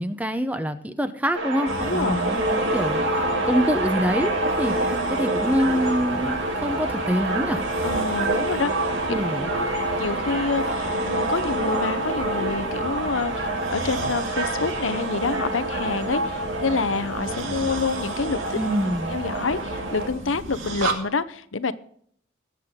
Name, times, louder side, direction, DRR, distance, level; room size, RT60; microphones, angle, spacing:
voice 1, 0.0-7.6 9.1-9.5 18.5-19.2, equal, 10° right, 10 dB, 0.8 m, -26 dB
sound 1, 1.3-20.1, right 2 dB, 65° right, 2.4 m, -27 dB
sound 2, 1.7-20.9, right 2 dB, 90° right, 2.2 m, -36 dB
voice 2, 1.8-2.2 7.8-8.7 9.4-9.6 10.0-18.6 18.9-21.7, left 4 dB, 85° left, 13 dB, 0.8 m, -27 dB
20.5 x 8.0 x 3.7 m, 0.63 s
head